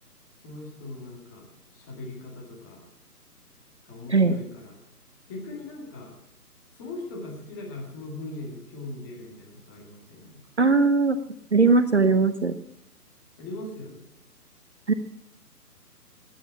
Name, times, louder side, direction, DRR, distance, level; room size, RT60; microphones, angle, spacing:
voice 1, 0.4-2.9 3.9-4.8 5.3-6.1 6.7-10.4 13.4-14.0, left 2 dB, 15° left, -1 dB, 2.0 m, -40 dB
voice 2, 10.6-11.2 11.5-12.5 14.9-15.0, right 4 dB, 45° right, 10 dB, 0.7 m, -19 dB
19.0 x 9.4 x 5.9 m, 0.79 s
figure-of-eight pair, 145°, 48 cm